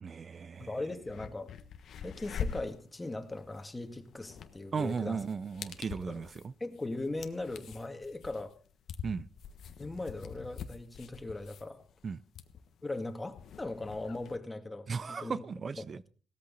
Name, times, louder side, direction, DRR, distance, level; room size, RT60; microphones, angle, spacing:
voice 1, 0.0-0.8 4.7-6.5 9.0-9.3 12.0-12.2 14.9-16.1, right 5 dB, 40° right, 0.6 m, -36 dB
sound 1, 0.6-0.7 1.0-14.4, left 7 dB, 65° left, 1.3 m, -45 dB
voice 2, 0.7-1.5 2.0-5.2 6.1-6.2 6.6-8.5 9.8-11.8 12.8-14.9 15.2-15.4, left 2 dB, 15° left, 2.1 m, -39 dB
17.0 x 14.0 x 4.1 m
cardioid pair, 90°, 0 cm